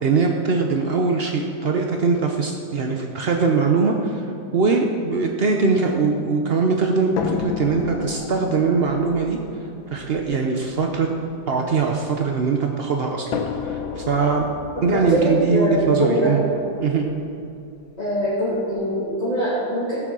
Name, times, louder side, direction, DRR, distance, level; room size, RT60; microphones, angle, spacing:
voice 1, 0.0-9.4 9.9-11.1 11.5-14.4 14.8-16.4 16.8-17.1, right 4 dB, 70° right, 2 dB, 0.5 m, -21 dB
sound 1, 7.2-12.4 13.3-17.3 18.2-18.3 18.8-18.9, left 5 dB, 85° left, 1.6 m, -33 dB
voice 2, 14.9-16.3 18.0-20.0, equal, 20° left, -9 dB, 2.5 m, -23 dB
15.0 x 8.1 x 6.3 m, 2.5 s
omnidirectional pair, 2.1 m